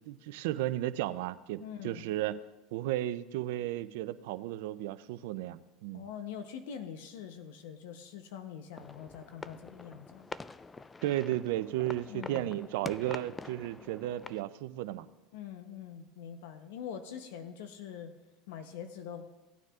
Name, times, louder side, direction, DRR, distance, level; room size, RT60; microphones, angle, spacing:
voice 1, 0.0-2.4 2.7-6.0 11.0-15.1, right 14 dB, 75° right, 14 dB, 0.5 m, -34 dB
voice 2, 1.6-2.0 5.9-10.3 12.1-12.5 15.3-18.1 18.5-19.2, left 8 dB, 80° left, 8 dB, 0.8 m, -44 dB
sound 1, 8.7-14.4, left 4 dB, 15° left, 0.3 m, -46 dB
17.5 x 9.2 x 2.4 m, 1.1 s
supercardioid pair, 100°, 0 cm